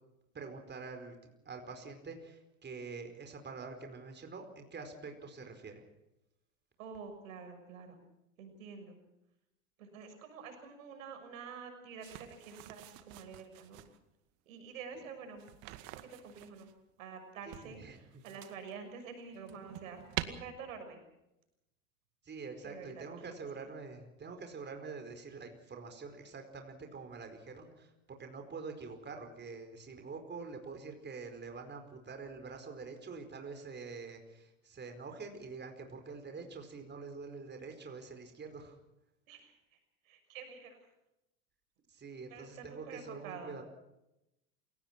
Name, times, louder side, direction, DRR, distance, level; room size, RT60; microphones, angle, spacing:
voice 1, 0.3-1.2 1.4-5.8 14.9-15.0 17.4-18.2 22.2-27.9 28.2-38.8 41.9-43.6, right 4 dB, 25° right, 5 dB, 4.9 m, -46 dB
voice 2, 6.8-8.0 8.4-9.0 9.8-13.8 14.5-16.7 17.0-21.0 22.6-23.3 39.3-39.5 40.0-40.8 42.3-43.6, right 5 dB, 80° right, 6 dB, 6.4 m, -48 dB
sound 1, 12.0-14.0 15.4-16.7 17.5-18.7 19.2-20.2, right 17 dB, 60° right, 2.1 m, -45 dB
28.0 x 18.0 x 6.0 m, 0.89 s
hypercardioid pair, 90°, 39 cm